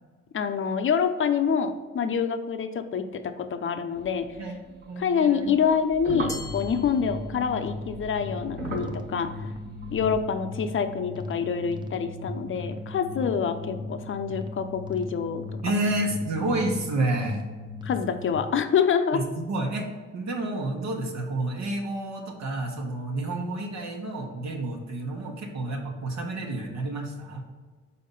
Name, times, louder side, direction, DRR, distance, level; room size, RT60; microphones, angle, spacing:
voice 1, 0.3-4.2 5.0-9.3 9.9-15.4 17.8-19.2, left 6 dB, 40° left, 9 dB, 0.7 m, -26 dB
sound 1, 3.9-5.0 5.6-10.2, right 2 dB, 30° right, 1.6 m, -39 dB
voice 2, 4.8-5.5 15.6-17.4 19.1-19.9 20.1-27.4, right 2 dB, 65° right, -1 dB, 1.2 m, -30 dB
sound 2, 6.2-18.4, left 2 dB, 15° right, 0.7 m, -37 dB
Glass, 6.3-7.7, left 1 dB, 10° left, 0.9 m, -42 dB
5.7 x 4.2 x 5.4 m, 1.4 s
cardioid pair, 90°, 30 cm